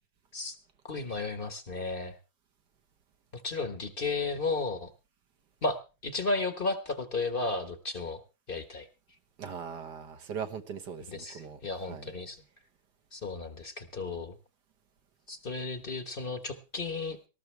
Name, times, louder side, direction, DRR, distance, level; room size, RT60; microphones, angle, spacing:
voice 1, 0.8-2.2 3.3-4.9 5.6-8.2 8.5-8.9 11.1-12.4 13.1-14.4 15.3-17.2, left 3 dB, 35° left, 1.1 m, -34 dB
voice 2, 9.4-11.6 11.9-12.1, right 7 dB, 60° right, 1.7 m, -40 dB
19.0 x 13.5 x 3.3 m
omnidirectional pair, 2.1 m